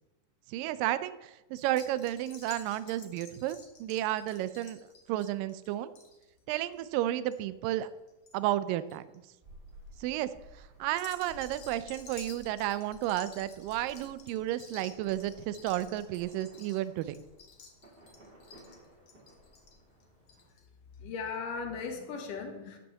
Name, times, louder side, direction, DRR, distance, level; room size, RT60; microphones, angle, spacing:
voice 1, 0.5-4.8 5.1-5.9 6.5-7.9 8.3-9.0 10.0-10.3 10.8-17.2, right 13 dB, 80° right, 15 dB, 2.1 m, -32 dB
sound 1, 1.6-8.3 8.6-9.2 9.7-10.0 10.8-20.6 20.9-21.0 21.3-21.4, left 5 dB, 50° left, 1.8 m, -53 dB
sound 2, 9.4-20.5, right 1 dB, 20° right, 1.8 m, -56 dB
voice 2, 21.0-22.8, left 5 dB, 70° left, 4 dB, 2.7 m, -37 dB
12.0 x 5.7 x 7.3 m, 1.0 s
omnidirectional pair, 4.2 m